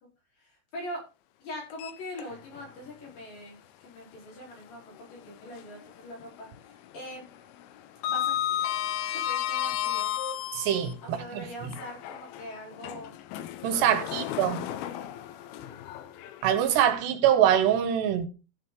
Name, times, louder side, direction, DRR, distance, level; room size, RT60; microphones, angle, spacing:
voice 1, 0.4-1.1 1.4-7.2 8.1-8.7 9.1-10.2 11.0-13.2 13.9-14.8 15.4-15.9, equal, 55° left, 6.0 m, -43 dB
Sliding door, 1.7-2.7 3.1-3.2 4.9-5.9 6.2-6.6 6.8-10.9 11.6-16.8, left 11 dB, 75° left, 2.5 m, -33 dB
voice 2, 10.6-11.4 13.6-14.6 16.4-18.3, right 10 dB, 80° right, 3.3 m, -24 dB
13.5 x 7.6 x 3.9 m
omnidirectional pair, 4.8 m